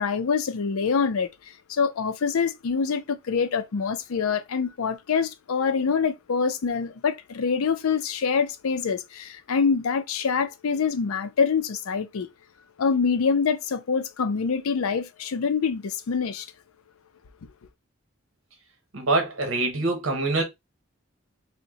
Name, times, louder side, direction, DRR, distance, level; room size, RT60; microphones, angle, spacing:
voice 1, 0.0-12.3 12.8-16.5, left 5 dB, 80° left, 0.5 m, -25 dB
voice 2, 18.9-20.4, right 2 dB, 65° right, 1.0 m, -24 dB
2.7 x 2.1 x 3.9 m
head